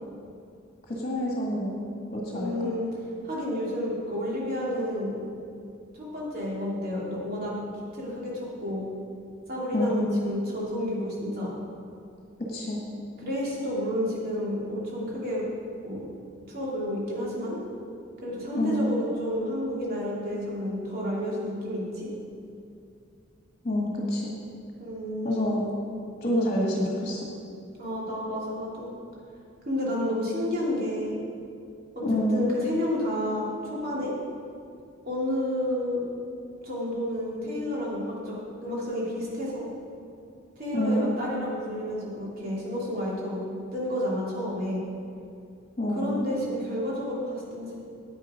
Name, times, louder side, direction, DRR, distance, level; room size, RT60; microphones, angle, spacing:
voice 1, 0.9-1.8 2.1-2.5 9.7-10.0 12.5-12.8 18.5-18.9 23.6-24.3 25.2-25.6 26.2-27.3 32.0-32.5 40.7-41.1 45.8-46.3, equal, 35° left, -3 dB, 1.7 m, -27 dB
voice 2, 2.3-2.9 3.2-5.2 5.9-7.5 7.9-8.8 9.5-11.5 13.2-15.4 15.8-16.1 16.5-17.6 18.2-22.1 24.8-25.5 27.8-28.9 29.6-31.2 31.9-32.0 32.3-34.1 35.0-36.0 36.6-38.4 38.6-39.6 40.6-43.4 43.7-44.8 45.9-47.8, left 1 dB, 50° right, -6 dB, 3.1 m, -30 dB
9.9 x 9.0 x 5.2 m, 2.5 s
head